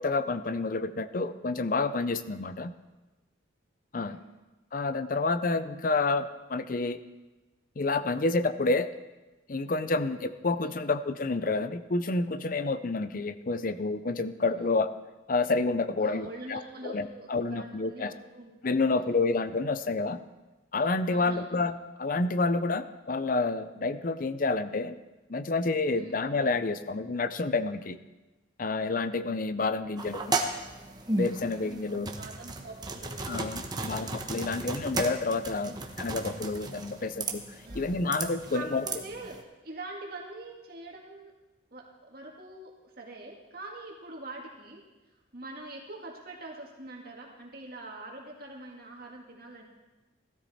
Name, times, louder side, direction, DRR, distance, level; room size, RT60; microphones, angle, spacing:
voice 1, 0.0-2.7 3.9-4.2 4.7-7.0 7.8-8.9 9.5-14.9 15.3-18.1 18.6-20.2 20.7-21.7 22.0-25.0 25.3-28.0 28.6-30.3 31.1-32.1 33.3-37.4 37.7-38.8, left 3 dB, 45° left, 12 dB, 0.6 m, -29 dB
voice 2, 4.0-4.3 10.6-10.8 14.6-14.7 16.0-18.5 18.9-19.2 21.1-21.6 26.0-26.3 31.6-34.0 34.4-34.5 35.6-35.8 37.6-37.9 38.5-41.3 41.7-44.9 45.3-49.6, right 2 dB, 50° right, -1 dB, 2.0 m, -44 dB
sound 1, 30.0-39.4, right 2 dB, 20° right, 1.0 m, -35 dB
17.5 x 13.0 x 4.3 m, 1.1 s
head